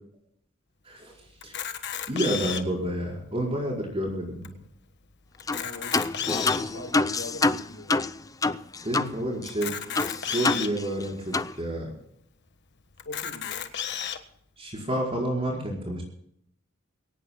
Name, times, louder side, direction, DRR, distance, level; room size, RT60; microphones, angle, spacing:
voice 1, 0.8-1.6 2.1-4.6 8.8-9.8 10.3-11.9 14.6-16.0, right 1 dB, 30° right, -2 dB, 4.8 m, -30 dB
Camera, 1.4-2.8 3.5-3.6 3.8-3.9 4.4-4.5 5.3-6.7 7.4-7.5 9.5-10.7 11.4-11.5 11.8-11.9 13.0-14.2, left 9 dB, 55° left, 1.3 m, -33 dB
sound 1, 5.5-5.6 5.9-9.1 9.4-9.5 9.9-11.0 11.3-11.5, left 3 dB, 15° left, 0.5 m, -26 dB
voice 2, 5.6-8.1 13.0-13.6, left 2 dB, 75° left, -6 dB, 6.2 m, -41 dB
24.0 x 17.5 x 2.2 m, 0.71 s
head